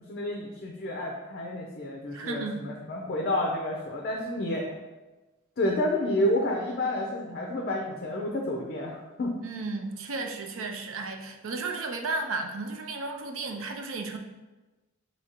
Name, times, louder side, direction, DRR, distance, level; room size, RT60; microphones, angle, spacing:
voice 1, 0.1-4.7 5.6-9.3, left 1 dB, 50° left, 0 dB, 0.5 m, -30 dB
voice 2, 2.1-2.6 9.4-14.2, right 3 dB, 80° right, 4 dB, 0.5 m, -34 dB
6.1 x 2.7 x 2.9 m, 1.1 s
head